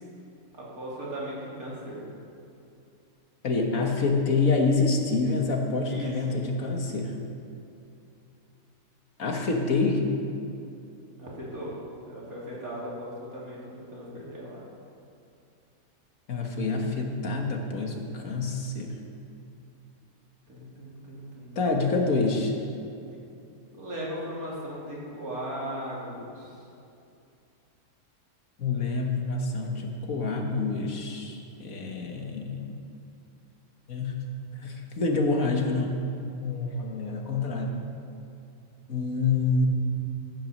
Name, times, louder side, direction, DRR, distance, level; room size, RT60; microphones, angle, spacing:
voice 1, 0.5-2.1 5.9-6.4 11.2-11.7 12.0-14.6 20.5-21.8 23.7-26.6, equal, 85° right, -6 dB, 3.7 m, -37 dB
voice 2, 3.4-7.2 9.2-10.0 16.3-18.9 21.6-22.5 28.6-32.7 33.9-34.1 34.6-36.0 36.4-37.8 38.9-39.7, left 3 dB, 75° left, 2 dB, 1.9 m, -27 dB
14.0 x 8.9 x 6.5 m, 2.6 s
omnidirectional pair, 1.5 m